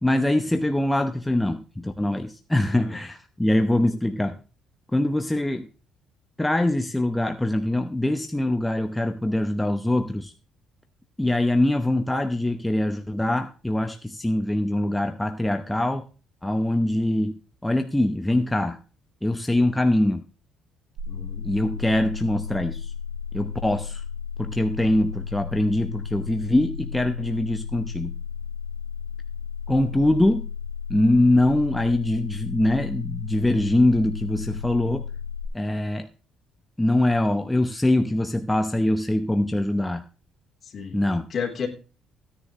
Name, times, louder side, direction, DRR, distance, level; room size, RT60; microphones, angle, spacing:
voice 1, 0.0-4.4 4.9-5.7 6.4-10.3 11.2-16.1 16.4-17.3 17.6-18.8 19.2-20.2 21.4-22.9 23.3-24.0 24.4-28.1 29.7-30.5 30.9-35.1 35.5-36.1 36.8-40.0 40.9-41.3, left 1 dB, 5° left, 6 dB, 0.8 m, -23 dB
sound 1, 21.0-35.5, left 6 dB, 60° right, 3.1 m, -34 dB
voice 2, 21.1-21.4 40.7-41.0 41.3-41.7, left 6 dB, 40° left, 2 dB, 3.5 m, -31 dB
16.0 x 9.9 x 3.2 m, 0.35 s
cardioid pair, 120°, 0 cm